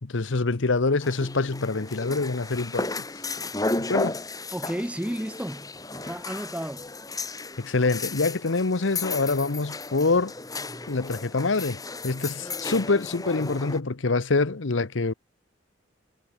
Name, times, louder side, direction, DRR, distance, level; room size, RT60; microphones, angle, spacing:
voice 1, 0.0-2.9 3.8-4.2 7.6-10.3 10.9-15.1, left 3 dB, 85° left, 1.0 m, -25 dB
sound 1, 1.0-13.8, left 3 dB, 20° left, 1.7 m, -34 dB
voice 2, 4.5-6.9, equal, 5° right, 0.9 m, -33 dB
head